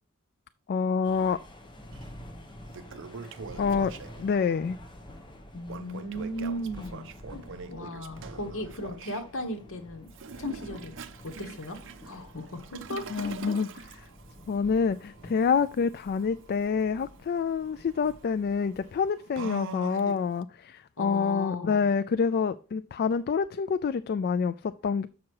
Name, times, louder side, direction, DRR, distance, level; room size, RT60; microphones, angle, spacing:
voice 1, 0.7-1.4 3.6-3.9 4.2-4.8 13.1-13.7 14.5-25.1, left 5 dB, 45° left, 0.3 m, -27 dB
sound 1, 1.0-19.0, equal, 20° left, 1.3 m, -48 dB
Toilet flush, 1.9-2.0 2.5-4.4 5.6-9.2 10.1-20.4, right 5 dB, 60° right, 0.6 m, -44 dB
voice 2, 5.5-10.1 10.4-11.0 11.2-13.5 21.0-21.8, left 1 dB, 60° left, 1.6 m, -37 dB
7.3 x 6.0 x 4.7 m
head